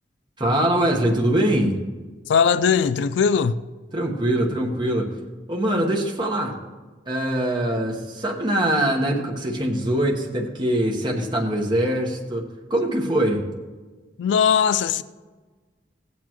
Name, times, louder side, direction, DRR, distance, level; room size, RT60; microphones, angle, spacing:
voice 1, 0.4-1.8 3.9-5.1 5.5-6.5 7.1-13.4, right 1 dB, 25° right, 1.1 m, -23 dB
voice 2, 2.3-3.6 14.2-15.0, left 6 dB, 90° left, 0.3 m, -19 dB
16.0 x 8.4 x 3.0 m
head